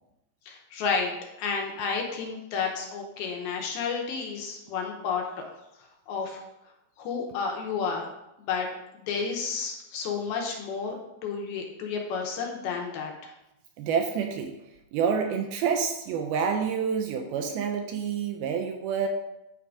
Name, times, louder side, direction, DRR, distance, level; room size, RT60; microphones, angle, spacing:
voice 1, 0.5-1.1 1.4-5.2 6.1-6.4 7.0-8.0 8.4-8.7 8.9-11.0 11.2-13.3, left 5 dB, 75° left, 2 dB, 2.6 m, -31 dB
voice 2, 13.8-14.6 14.9-19.1, right 6 dB, 80° right, 4 dB, 2.3 m, -28 dB
9.4 x 3.7 x 4.8 m, 0.90 s
omnidirectional pair, 4.8 m